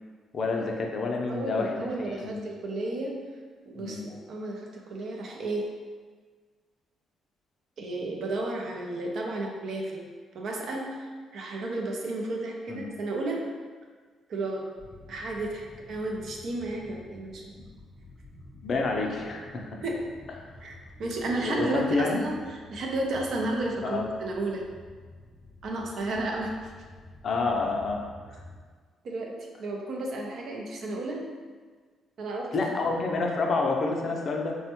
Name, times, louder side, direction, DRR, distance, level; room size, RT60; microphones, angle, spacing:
voice 1, 0.3-2.4 3.8-4.0 12.7-12.9 18.6-19.7 21.4-22.2 23.8-24.0 27.2-28.4 32.5-34.6, left 3 dB, 50° left, 1 dB, 0.4 m, -28 dB
voice 2, 1.3-3.1 3.7-5.7 7.8-10.0 10.3-13.4 14.3-14.7 15.1-17.5 19.8-20.0 20.6-24.7 25.6-26.5 29.0-29.3 29.6-31.3 32.2-32.5, right 2 dB, 65° right, 0 dB, 0.5 m, -32 dB
sound 1, 14.8-28.6, left 2 dB, 15° right, 0.6 m, -50 dB
3.3 x 2.1 x 2.9 m, 1.5 s
cardioid pair, 90°, 0 cm